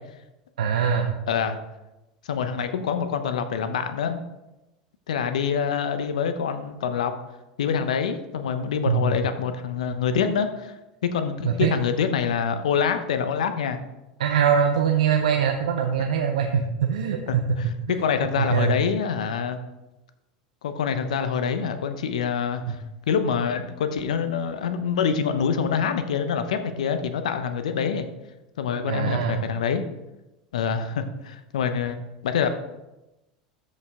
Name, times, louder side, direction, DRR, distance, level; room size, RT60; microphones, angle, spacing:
voice 1, 0.6-1.1 8.9-9.1 11.4-11.7 14.2-17.6 18.4-18.8 22.7-22.8 28.9-29.5, right 7 dB, 80° right, 4 dB, 0.8 m, -23 dB
voice 2, 1.3-1.6 2.3-4.2 5.1-7.1 7.6-10.8 11.0-13.8 17.3-19.6 20.6-28.1 28.6-29.8 30.5-32.5, left 6 dB, 80° left, 9 dB, 0.9 m, -26 dB
13.5 x 5.5 x 3.7 m, 0.99 s
hypercardioid pair, 90°, 4 cm